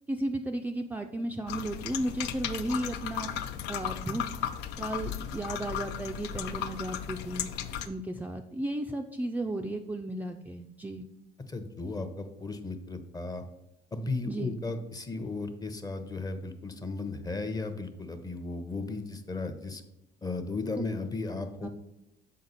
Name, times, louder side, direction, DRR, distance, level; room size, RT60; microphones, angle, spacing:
voice 1, 0.1-3.3 3.7-4.2 4.8-7.5 7.9-11.1 14.3-14.5 21.6-21.7, right 1 dB, 10° right, 3 dB, 0.3 m, -34 dB
sound 1, 1.5-7.9, left 9 dB, 85° left, 0.4 m, -35 dB
voice 2, 11.5-13.4 13.9-19.8 20.2-21.7, left 3 dB, 20° left, 8 dB, 0.7 m, -35 dB
6.5 x 4.3 x 4.0 m, 0.88 s
cardioid pair, 110°, 17 cm